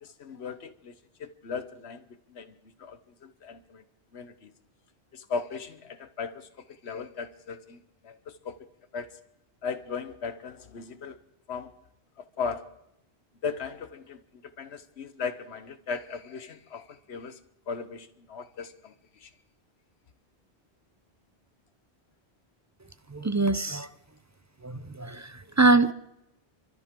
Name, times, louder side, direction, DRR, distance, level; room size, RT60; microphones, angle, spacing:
voice 1, 0.0-0.9 1.2-3.8 4.1-4.5 5.1-6.5 6.8-8.6 8.9-9.1 9.6-11.2 11.5-11.7 12.4-12.6 13.4-14.2 14.6-17.4 17.7-18.9 19.2-19.3, left 5 dB, 85° left, 12 dB, 1.3 m, -37 dB
voice 2, 23.1-23.9 24.6-25.3 25.6-25.9, right 3 dB, 25° right, 13 dB, 0.4 m, -23 dB
29.5 x 13.0 x 3.7 m, 0.83 s
omnidirectional pair, 1.1 m